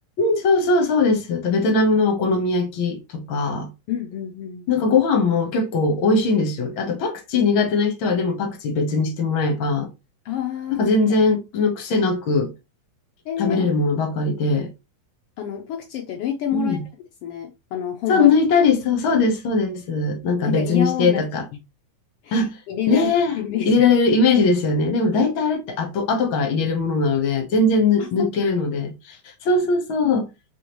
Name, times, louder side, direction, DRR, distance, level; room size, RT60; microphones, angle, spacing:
voice 1, 0.2-3.7 4.7-9.9 10.8-12.5 13.4-14.7 16.5-16.8 18.1-21.4 22.3-22.5 22.9-23.4 23.6-28.9 29.4-30.3, left 3 dB, 55° left, 1.5 m, -20 dB
voice 2, 3.9-4.7 10.2-10.9 13.2-13.7 15.4-16.8 17.2-18.4 20.4-21.2 22.2-23.9 28.0-28.5 30.0-30.1, left 10 dB, 80° left, 1.3 m, -28 dB
5.0 x 3.5 x 3.0 m
omnidirectional pair, 3.5 m